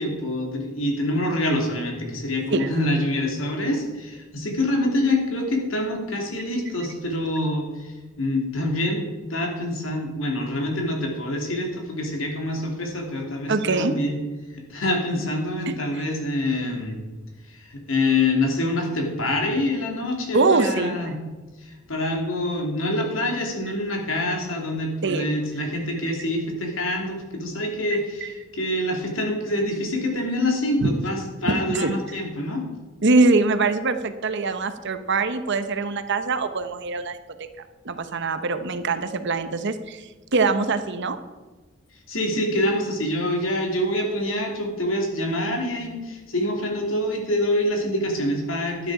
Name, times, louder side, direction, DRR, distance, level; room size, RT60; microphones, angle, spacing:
voice 1, 0.0-14.2 14.5-17.0 17.5-21.2 21.6-32.7 42.1-48.9, left 1 dB, 75° left, 1 dB, 2.9 m, -26 dB
voice 2, 13.5-13.9 15.7-15.8 20.3-21.0 25.0-25.3 27.9-28.3 30.8-30.9 31.5-31.9 33.0-37.2 37.8-41.2, right 3 dB, 60° right, 10 dB, 0.9 m, -23 dB
12.0 x 9.9 x 4.9 m, 1.3 s
head